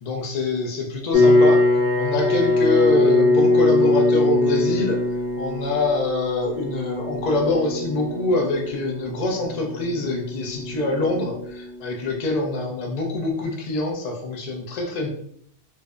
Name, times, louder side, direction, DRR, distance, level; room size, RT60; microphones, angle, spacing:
voice 1, 0.0-1.6 2.0-5.0 5.4-15.1, left 2 dB, 55° left, 1 dB, 0.4 m, -25 dB
sound 1, 1.1-12.2, left 2 dB, 30° right, 0.7 m, -22 dB
2.6 x 2.1 x 2.3 m, 0.67 s
omnidirectional pair, 1.2 m